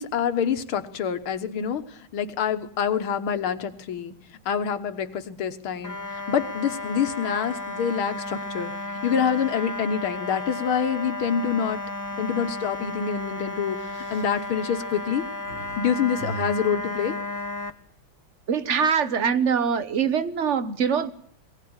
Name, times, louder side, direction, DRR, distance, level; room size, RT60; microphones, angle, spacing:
voice 1, 0.0-1.8 2.1-4.1 4.5-6.0 6.3-8.7 9.0-11.8 12.2-15.3 15.8-17.1, left 7 dB, 80° left, 2.1 m, -26 dB
sound 1, 5.8-17.7, left 2 dB, 25° left, 0.4 m, -33 dB
sound 2, 11.8-12.1 12.5-12.7 13.5-15.8 16.2-18.0, right 3 dB, 60° right, 4.9 m, -40 dB
voice 2, 18.5-21.1, right 6 dB, 45° right, 1.0 m, -23 dB
22.0 x 17.5 x 8.8 m
omnidirectional pair, 2.3 m